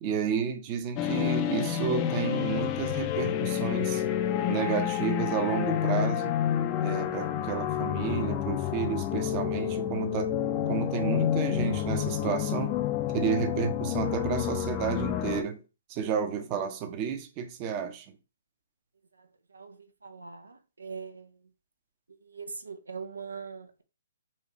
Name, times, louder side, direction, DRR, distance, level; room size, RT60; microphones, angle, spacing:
voice 1, 0.0-4.0 4.4-6.3 6.8-10.3 10.6-12.8 13.1-15.6 15.9-18.2, right 7 dB, 30° right, 0.6 m, -31 dB
sound 1, 1.0-15.4, left 10 dB, 30° left, 0.4 m, -29 dB
voice 2, 19.5-21.3 22.3-23.8, right 5 dB, 90° right, 0.5 m, -41 dB
4.1 x 2.4 x 3.0 m
hypercardioid pair, 135°, 0 cm